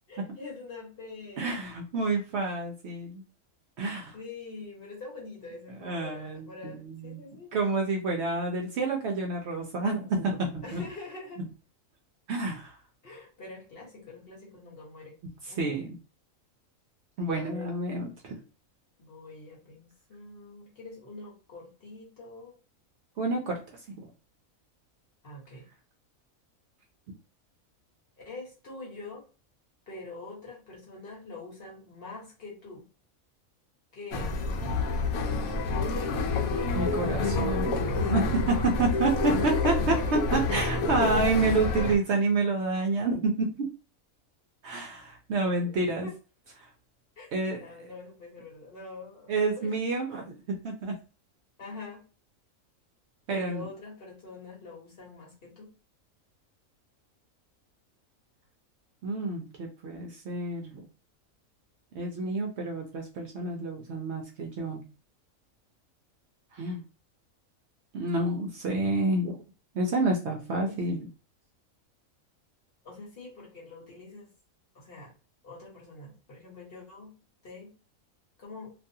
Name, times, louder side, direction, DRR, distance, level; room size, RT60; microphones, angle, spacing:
voice 1, 0.1-1.7 4.1-7.5 10.6-11.4 13.0-15.2 15.5-15.8 17.3-17.9 19.0-22.6 25.2-25.7 28.2-29.2 29.9-32.8 33.9-34.4 38.8-40.1 40.5-40.8 45.8-46.1 47.2-49.8 51.6-52.0 53.3-55.7 70.6-71.0 72.8-74.3 74.7-75.1 75.4-77.2 77.4-77.7 78.4-78.7, left 3 dB, 45° left, -3 dB, 1.1 m, -45 dB
voice 2, 1.4-3.2 3.8-4.2 5.8-7.2 7.5-10.8 12.3-12.8 15.4-16.0 17.2-18.4 23.2-24.1 36.7-37.8 38.1-43.7 44.6-46.1 46.6-46.7 47.3-47.6 49.3-50.9 53.3-53.6 59.0-60.8 61.9-64.8 66.5-66.8 67.9-69.4 69.7-71.0, right 3 dB, 65° right, 1 dB, 0.7 m, -29 dB
sound 1, 34.1-42.0, left 3 dB, 85° left, 1.0 m, -28 dB
2.6 x 2.3 x 2.6 m, 0.34 s
omnidirectional pair, 1.4 m